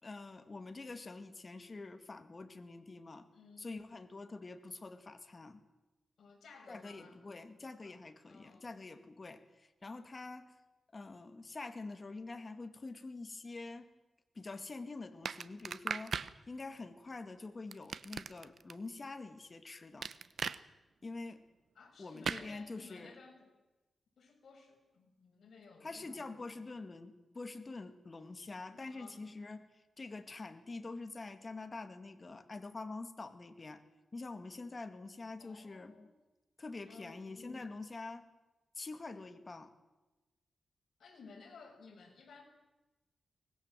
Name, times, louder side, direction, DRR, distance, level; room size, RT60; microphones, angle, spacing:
voice 1, 0.0-3.3 3.6-5.6 6.7-10.5 10.9-13.9 14.4-16.1 16.5-20.1 21.0-21.4 22.0-23.1 25.8-33.8 34.1-36.1 36.6-38.2 38.8-39.7, left 3 dB, 35° left, 8 dB, 2.0 m, -46 dB
voice 2, 3.3-3.7 6.2-7.2 7.8-8.0 8.3-8.7 21.7-23.5 24.2-26.3 28.7-29.2 35.4-36.1 36.8-37.2 41.0-42.4, left 4 dB, 70° left, 2 dB, 6.3 m, -57 dB
sound 1, 15.3-16.3 17.7-18.7 20.0-20.6 22.2-22.5, right 6 dB, 65° right, 0.9 m, -38 dB
24.0 x 20.5 x 7.5 m, 1.1 s
wide cardioid pair, 105°, 0 cm